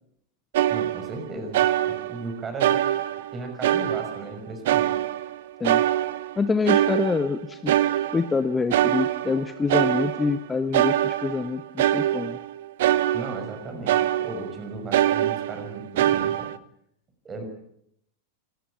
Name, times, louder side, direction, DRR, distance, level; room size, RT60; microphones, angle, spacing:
sound 1, 0.5-1.3 1.5-2.3 2.6-4.3 4.6-5.4 5.6-8.4 8.7-10.4 10.7-13.6 13.9-14.6 14.9-16.6, right 13 dB, 55° right, 0.9 m, -24 dB
voice 1, 0.7-2.8 3.3-4.9 13.1-16.5 17.2-17.4, right 2 dB, 20° right, 6 dB, 6.2 m, -36 dB
voice 2, 6.4-7.7 8.1-12.4, left 4 dB, 15° left, 11 dB, 1.0 m, -26 dB
26.5 x 14.0 x 8.7 m, 0.75 s
figure-of-eight pair, 90°, 0 cm